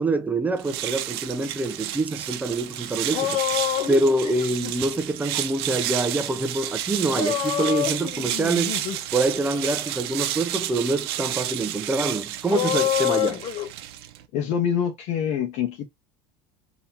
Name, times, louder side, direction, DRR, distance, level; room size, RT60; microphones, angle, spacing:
voice 1, 0.0-3.4 3.9-8.8 9.1-13.4, right 2 dB, 10° right, 0.6 m, -25 dB
sound 1, 0.6-14.3, right 12 dB, 85° right, 0.7 m, -31 dB
sound 2, 2.7-2.8 2.9-4.7 7.1-9.0 9.4-9.6 12.5-13.7, left 11 dB, 45° left, 1.1 m, -27 dB
voice 2, 14.3-15.9, left 8 dB, 65° left, 1.0 m, -25 dB
4.0 x 2.9 x 4.3 m
supercardioid pair, 115°, 13 cm